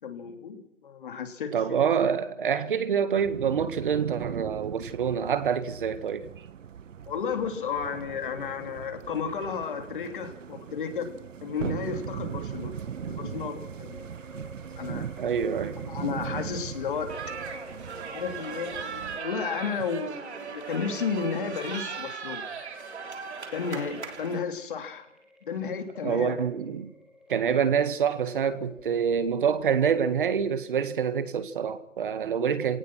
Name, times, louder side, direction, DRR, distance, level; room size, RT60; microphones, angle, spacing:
voice 1, 0.0-1.8 7.1-11.1 11.4-14.1 14.8-15.1 15.9-17.1 18.1-22.4 23.5-25.0 25.4-26.3, left 6 dB, 45° left, 3.2 m, -33 dB
voice 2, 1.5-6.3 15.2-15.8 26.0-26.9 27.3-32.8, right 7 dB, 45° right, 1.8 m, -26 dB
sound 1, 3.2-19.2, right 8 dB, 85° right, 0.9 m, -39 dB
sound 2, 10.7-30.5, left 2 dB, ahead, 2.9 m, -50 dB
sound 3, 17.1-24.4, right 6 dB, 60° right, 3.4 m, -38 dB
28.5 x 18.5 x 6.2 m
hypercardioid pair, 170°, 37 cm